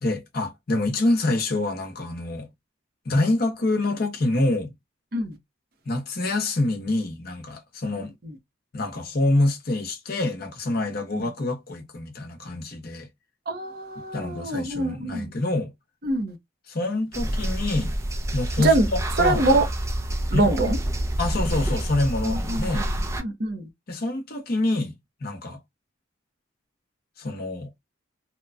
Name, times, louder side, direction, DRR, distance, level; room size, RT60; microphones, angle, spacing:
voice 1, 0.0-2.5 3.0-4.7 5.9-8.1 8.7-13.1 14.0-15.7 16.7-17.9 18.3-19.4 20.3-20.5 21.2-22.9 23.9-25.0 25.2-25.6 27.2-27.7, left 2 dB, 50° left, 0.8 m, -26 dB
voice 2, 13.5-15.3 16.0-16.4 18.6-18.9 19.2-19.7 20.3-20.8 22.2-22.9 23.2-23.7, right 2 dB, 50° right, 0.8 m, -24 dB
sound 1, 17.1-23.2, right 1 dB, 15° right, 0.4 m, -27 dB
2.9 x 2.2 x 2.4 m
head